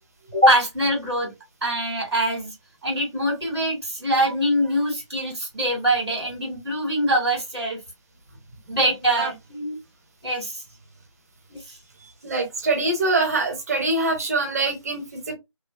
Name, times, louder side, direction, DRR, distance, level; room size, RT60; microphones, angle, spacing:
voice 1, 0.3-1.3 1.6-2.5 2.8-7.8 8.7-9.8 10.2-10.6 11.5-11.8, right 1 dB, ahead, 0.5 m, -23 dB
voice 2, 12.2-15.3, right 2 dB, 30° right, 0.9 m, -24 dB
3.0 x 2.1 x 2.5 m
figure-of-eight pair, 165°, 16 cm